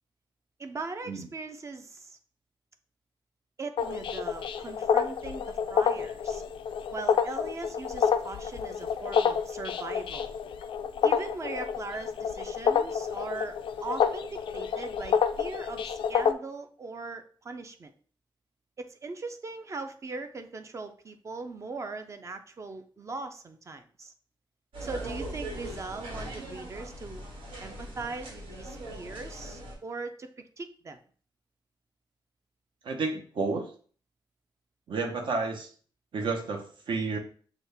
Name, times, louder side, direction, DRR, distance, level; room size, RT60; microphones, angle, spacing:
voice 1, 0.6-2.2 3.6-6.4 6.9-10.3 11.0-17.9 18.8-24.1 24.8-27.2 27.6-30.3 30.6-31.0, right 3 dB, 35° right, 8 dB, 0.5 m, -40 dB
sound 1, 3.8-16.3, left 7 dB, 75° left, 0.4 m, -28 dB
sound 2, 24.7-29.8, right 1 dB, 85° right, 1.6 m, -40 dB
voice 2, 32.8-33.7 34.9-35.7 36.1-37.2, right 4 dB, 70° right, 3 dB, 1.0 m, -31 dB
6.1 x 2.4 x 3.4 m, 0.43 s
wide cardioid pair, 135°, 9 cm